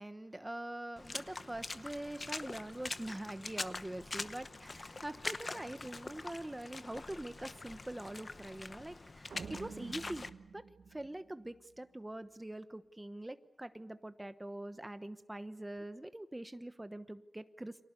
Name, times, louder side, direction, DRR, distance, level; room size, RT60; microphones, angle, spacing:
voice 1, 0.0-17.8, right 1 dB, 10° right, 11 dB, 1.1 m, -44 dB
Water / Splash splatter, 1.0-10.3, left 3 dB, 35° left, 0.9 m, -44 dB
sound 1, 9.3-11.8, right 5 dB, 90° right, 1.2 m, -49 dB
30.0 x 25.0 x 6.8 m, 0.79 s
wide cardioid pair, 160°, 0 cm